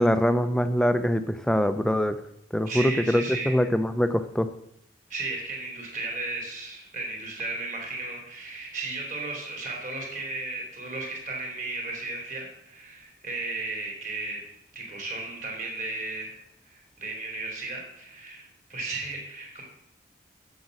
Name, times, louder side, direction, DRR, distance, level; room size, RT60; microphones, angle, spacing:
voice 1, 0.0-2.2 2.5-4.5, equal, 5° left, 10 dB, 0.5 m, -23 dB
voice 2, 2.7-3.6 5.1-14.4 14.7-16.4 16.7-19.6, right 3 dB, 45° right, 0 dB, 3.0 m, -35 dB
8.0 x 7.2 x 6.4 m, 0.75 s
head